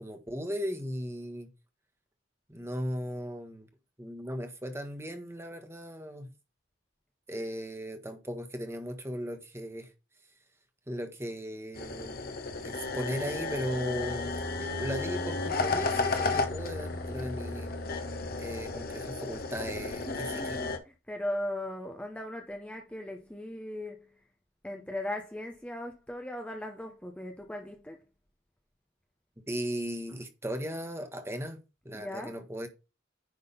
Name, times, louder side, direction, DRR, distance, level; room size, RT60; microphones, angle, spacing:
voice 1, 0.0-1.5 2.5-3.7 4.0-6.3 7.3-9.9 10.9-12.2 12.6-17.7 18.4-20.6 29.5-32.7, equal, 15° right, 1.3 m, -37 dB
sound 1, 11.7-20.8, left 3 dB, 50° left, 1.2 m, -33 dB
voice 2, 20.1-24.2 24.6-28.0 31.9-32.4, left 1 dB, 5° left, 0.8 m, -38 dB
9.8 x 3.7 x 5.4 m
head